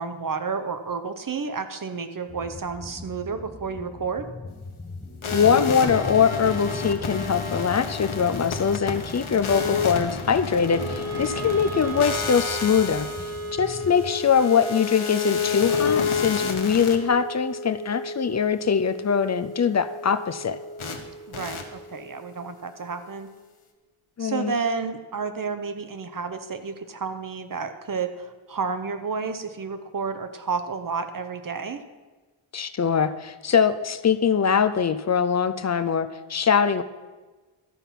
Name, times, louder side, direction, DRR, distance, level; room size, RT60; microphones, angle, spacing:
voice 1, 0.0-4.3 21.3-23.3 24.2-31.8, right 5 dB, 40° right, 9 dB, 0.8 m, -31 dB
sound 1, 2.3-14.1, left 2 dB, 15° left, 1.0 m, -41 dB
sound 2, 5.2-17.0 20.8-21.0 21.3-21.6, left 5 dB, 75° left, 1.2 m, -30 dB
voice 2, 5.3-13.1 13.5-20.6 24.2-24.5 32.5-36.8, left 7 dB, 35° left, 12 dB, 0.5 m, -22 dB
Wind instrument woodwind instrument, 10.6-22.8, right 1 dB, 70° right, 3.3 m, -36 dB
12.5 x 5.4 x 5.8 m, 1.3 s
wide cardioid pair, 110°, 49 cm